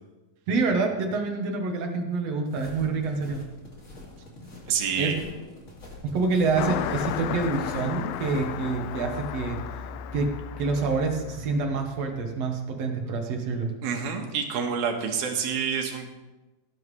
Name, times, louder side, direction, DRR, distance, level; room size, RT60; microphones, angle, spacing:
voice 1, 0.5-3.4 5.0-5.1 6.0-9.6 10.1-10.3 10.6-13.7, right 4 dB, 60° right, 3 dB, 1.8 m, -27 dB
sound 1, 2.5-8.5, left 2 dB, 25° left, 1.7 m, -45 dB
voice 2, 4.7-5.2 13.8-16.1, right 6 dB, 75° right, 3 dB, 3.1 m, -28 dB
Car passing by, 6.6-12.4, left 9 dB, 80° left, 2.4 m, -34 dB
17.5 x 9.4 x 3.3 m, 1.1 s
omnidirectional pair, 4.3 m